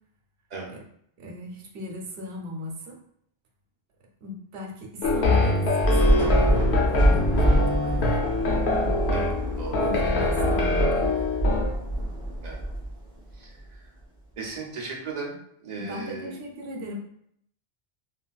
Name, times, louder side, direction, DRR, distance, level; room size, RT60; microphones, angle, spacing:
voice 1, 1.2-3.0 4.2-8.2 8.5-9.0 9.7-11.2 15.8-17.0, left 1 dB, 75° right, -1 dB, 1.0 m, -38 dB
sound 1, 5.0-11.6, left 2 dB, 75° left, 0.9 m, -24 dB
Thunder / Rain, 5.8-13.3, right 1 dB, 40° left, 1.4 m, -25 dB
voice 2, 14.4-15.4 15.6-16.3, right 3 dB, 45° right, -1 dB, 0.7 m, -35 dB
3.3 x 2.5 x 2.3 m, 0.69 s
omnidirectional pair, 1.1 m